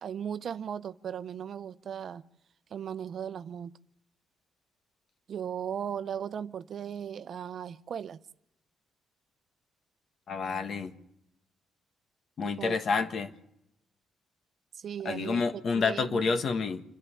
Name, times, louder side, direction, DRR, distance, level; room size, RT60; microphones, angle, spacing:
voice 1, 0.0-2.2 2.7-3.7 5.3-8.2 12.4-12.8 14.7-15.4 15.7-16.4, right 8 dB, 60° right, 0.7 m, -37 dB
voice 2, 10.3-11.0 12.4-13.3 15.0-16.8, left 4 dB, 55° left, 1.4 m, -29 dB
27.5 x 11.0 x 8.6 m
cardioid pair, 90°, 0 cm